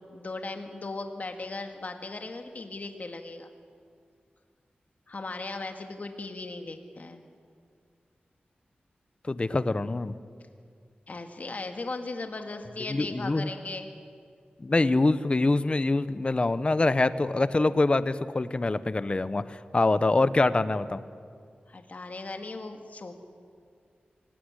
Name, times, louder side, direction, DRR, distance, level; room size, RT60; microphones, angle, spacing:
voice 1, 0.0-3.5 5.1-7.2 11.1-13.9 21.7-23.1, left 3 dB, 50° left, 5 dB, 2.0 m, -37 dB
voice 2, 9.3-10.1 12.8-13.5 14.6-21.0, left 2 dB, 30° left, 14 dB, 0.8 m, -25 dB
24.5 x 16.5 x 9.8 m, 2.2 s
wide cardioid pair, 110°, 3 cm